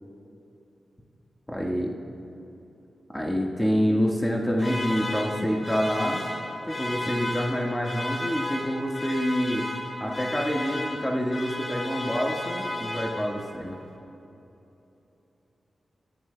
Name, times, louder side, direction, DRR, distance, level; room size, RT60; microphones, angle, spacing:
voice 1, 1.5-1.9 3.1-6.2 6.7-9.6 10.0-13.8, equal, 15° left, -1 dB, 1.6 m, -27 dB
sound 1, 4.6-13.6, left 1 dB, 45° left, 2.8 m, -33 dB
24.5 x 12.0 x 2.3 m, 3.0 s
cardioid pair, 45°, 0 cm